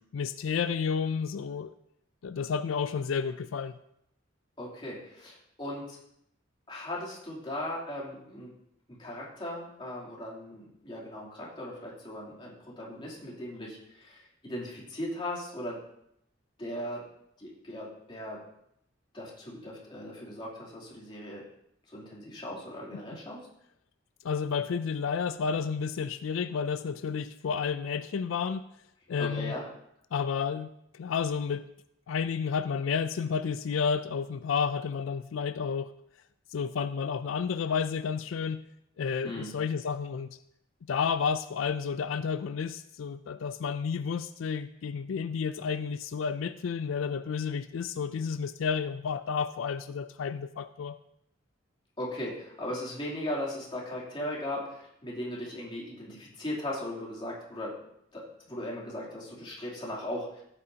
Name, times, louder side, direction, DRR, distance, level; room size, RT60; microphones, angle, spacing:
voice 1, 0.1-1.7 2.2-3.8 22.9-23.0 24.2-28.6 29.1-29.6 30.1-30.7 30.9-31.7 32.1-35.9 36.5-38.6 39.0-40.4 40.9-51.0, left 6 dB, 90° left, 12 dB, 0.4 m, -31 dB
voice 2, 4.6-6.0 6.7-8.5 9.0-15.8 16.6-17.0 17.4-18.4 19.1-21.4 21.9-23.4 29.2-29.6 39.2-39.5 52.0-57.7 58.1-60.4, left 1 dB, 25° left, -5 dB, 3.0 m, -38 dB
15.0 x 8.8 x 2.8 m, 0.75 s
head